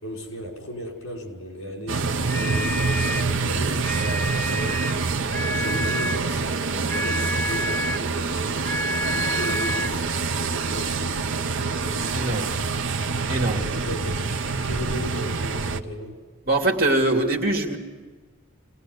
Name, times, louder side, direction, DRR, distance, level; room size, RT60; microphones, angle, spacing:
voice 1, 0.0-4.9 5.5-8.7 9.1-12.2 13.4-16.2, equal, 80° left, 1 dB, 5.8 m, -36 dB
sound 1, 1.9-15.8, right 4 dB, 70° right, 0.9 m, -26 dB
sound 2, 2.2-3.3 3.8-5.0 5.3-6.3 6.9-8.1 8.6-10.0, left 1 dB, 10° left, 1.1 m, -29 dB
voice 2, 12.1-12.5 13.3-13.6 16.5-17.8, right 2 dB, 45° right, 1 dB, 2.8 m, -22 dB
24.5 x 19.5 x 8.0 m, 1.4 s
head